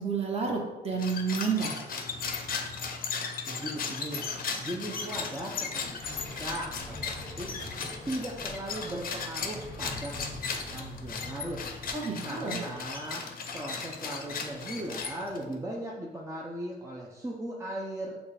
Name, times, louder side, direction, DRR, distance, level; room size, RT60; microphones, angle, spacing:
voice 1, 0.0-1.7 11.9-12.6, right 5 dB, 30° right, -1 dB, 1.2 m, -30 dB
sound 1, 0.9-15.5, left 5 dB, 45° left, 0.6 m, -36 dB
Motor vehicle (road), 2.0-3.2 4.0-5.5 5.8-6.2 6.4-6.5 6.9-8.0 9.1-9.2, right 1 dB, 75° right, 1.3 m, -52 dB
voice 2, 3.5-4.3 4.6-7.5 8.0-11.6 12.2-13.2 13.5-18.2, right 1 dB, 15° right, -3 dB, 0.6 m, -38 dB
sound 2, 6.0-11.9, left 1 dB, 5° left, 1.3 m, -45 dB
6.2 x 2.4 x 3.4 m, 1.1 s
cardioid pair, 90°, 20 cm